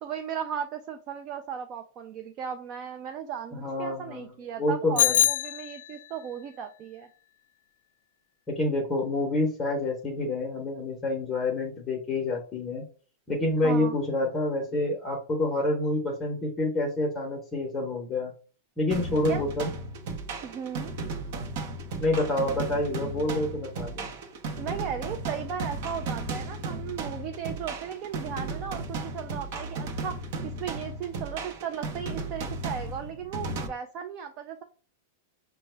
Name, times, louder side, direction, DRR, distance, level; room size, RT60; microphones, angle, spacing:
voice 1, 0.0-7.1 13.6-14.0 19.3-19.5 20.4-20.9 24.6-34.6, right 8 dB, 35° right, 6 dB, 0.4 m, -36 dB
voice 2, 3.5-4.3 4.6-5.2 8.5-12.9 13.3-18.3 18.8-19.7 22.0-24.1, left 2 dB, 15° left, -1 dB, 0.8 m, -28 dB
Bicycle bell, 5.0-6.2, left 11 dB, 80° left, 0.3 m, -24 dB
sound 1, 18.9-33.7, right 3 dB, 55° right, 0.7 m, -35 dB
5.3 x 2.1 x 3.2 m, 0.39 s
supercardioid pair, 160°, 0 cm